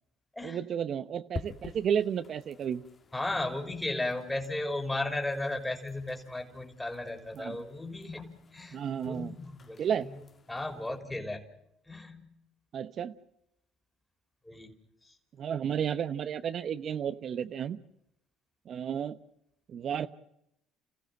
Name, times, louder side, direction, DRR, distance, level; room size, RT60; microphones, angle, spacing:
voice 1, 0.4-2.8 7.4-7.6 8.7-9.3 9.8-10.1 12.7-13.1 15.4-17.8 18.7-19.2 19.7-20.1, right 8 dB, 50° right, 11 dB, 0.8 m, -32 dB
sound 1, 1.3-11.0, left 4 dB, 40° left, 1.6 m, -50 dB
voice 2, 3.1-10.2 10.5-11.4 11.9-12.3 14.5-14.7 15.0-15.2, left 2 dB, 10° left, 4 dB, 3.5 m, -35 dB
28.0 x 15.5 x 7.6 m, 0.80 s
hypercardioid pair, 70°, 0 cm